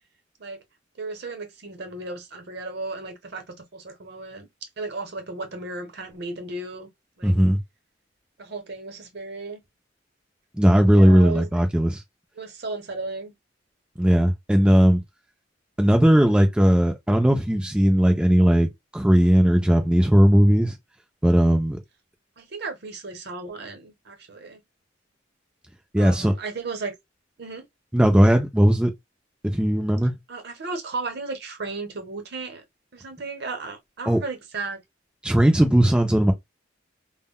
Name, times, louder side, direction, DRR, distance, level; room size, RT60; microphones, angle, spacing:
voice 1, 1.0-3.4 3.7-6.9 7.2-7.4 8.4-9.6 10.9-11.5 12.4-13.3 22.4-24.6 26.0-26.9 27.4-27.7 30.3-32.6 32.9-34.8, right 3 dB, 60° right, 0.8 m, -35 dB
voice 2, 7.2-7.6 10.6-12.0 14.0-15.0 15.8-20.7 21.2-21.8 25.9-26.3 27.9-28.9 29.4-30.1 34.1-34.2 35.2-36.3, equal, 5° right, 0.3 m, -18 dB
2.1 x 2.1 x 3.6 m
head